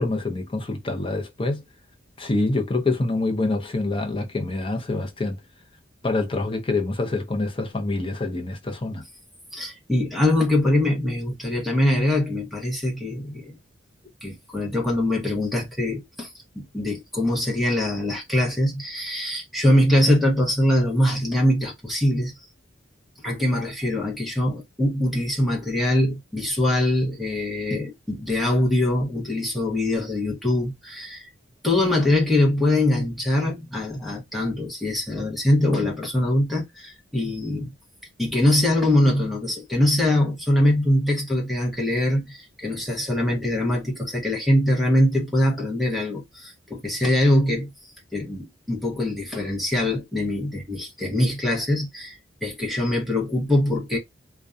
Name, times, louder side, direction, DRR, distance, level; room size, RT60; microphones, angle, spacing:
voice 1, 0.0-1.6 2.2-5.4 6.0-9.0, left 2 dB, 25° left, 0.5 m, -26 dB
voice 2, 9.5-13.5 14.2-16.3 16.5-22.3 23.2-31.3 31.6-37.7 38.2-47.7 48.1-52.2 52.4-54.0, left 1 dB, ahead, 0.9 m, -23 dB
2.6 x 2.2 x 2.4 m
head